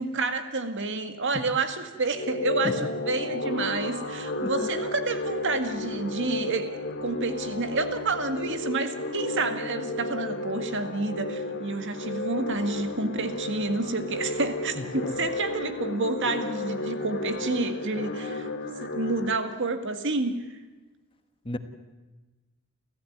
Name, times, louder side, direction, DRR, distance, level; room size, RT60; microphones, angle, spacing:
voice 1, 0.0-18.5 18.8-20.5, right 3 dB, 55° right, 8 dB, 1.9 m, -29 dB
sound 1, 2.1-19.3, left 2 dB, 50° left, 2.5 m, -33 dB
voice 2, 4.4-4.7 14.7-15.2 21.4-21.6, left 1 dB, 25° left, 8 dB, 1.4 m, -34 dB
29.5 x 15.0 x 9.4 m, 1.2 s
head